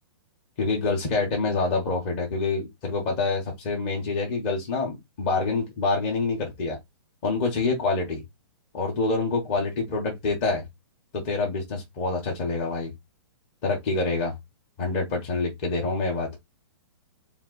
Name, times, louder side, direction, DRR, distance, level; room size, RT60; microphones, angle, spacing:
voice 1, 0.6-6.8 7.2-8.2 8.7-10.6 11.1-12.9 13.6-14.3 14.8-16.3, left 3 dB, 20° left, 1.2 m, -26 dB
3.9 x 2.7 x 3.8 m
hypercardioid pair, 180°, 14 cm